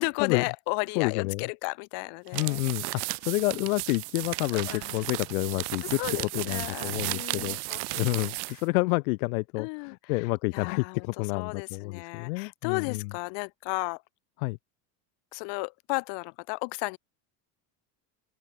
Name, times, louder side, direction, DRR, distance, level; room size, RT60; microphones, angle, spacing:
voice 1, 0.0-2.6 4.7-5.0 5.8-8.0 8.5-8.6 9.6-14.0 15.3-17.0, left 35 dB, 75° left, 4.3 m, -34 dB
voice 2, 0.9-1.4 2.3-2.8 3.2-6.0 6.3-7.6 8.0-13.0 14.4-14.6, left 24 dB, 90° left, 1.6 m, -29 dB
sound 1, 2.3-8.6, right 26 dB, 65° right, 1.4 m, -34 dB
open air
supercardioid pair, 120°, 42 cm